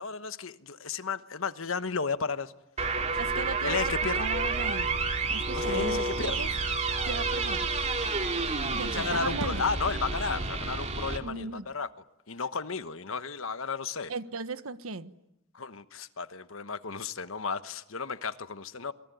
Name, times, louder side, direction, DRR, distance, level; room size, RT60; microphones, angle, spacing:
voice 1, 0.0-2.5 3.1-4.3 5.5-6.4 8.4-11.9 12.3-14.1 15.5-18.9, left 5 dB, 70° left, 1.2 m, -33 dB
sound 1, 2.8-11.2, right 3 dB, 35° right, 2.7 m, -30 dB
voice 2, 3.2-5.0 5.3-6.5 7.0-7.7 8.7-9.7 11.2-11.7 14.1-15.1, right 4 dB, 80° right, 1.4 m, -37 dB
27.5 x 23.0 x 9.4 m
head